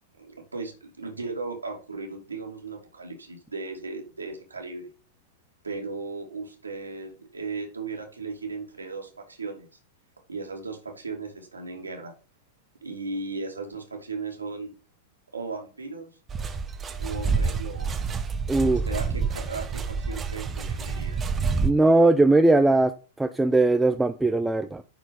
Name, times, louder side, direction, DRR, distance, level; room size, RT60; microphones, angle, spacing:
voice 1, 0.2-4.9 5.6-9.7 10.3-12.1 12.8-14.7 15.3-16.1 17.0-18.0 18.7-21.2, right 3 dB, 85° right, 2.4 m, -36 dB
sound 1, 16.3-21.7, right 4 dB, 20° right, 1.0 m, -28 dB
voice 2, 18.5-18.8 21.6-22.9 23.2-24.8, right 2 dB, 5° right, 0.5 m, -20 dB
9.8 x 4.5 x 5.3 m
figure-of-eight pair, 95°, 0 cm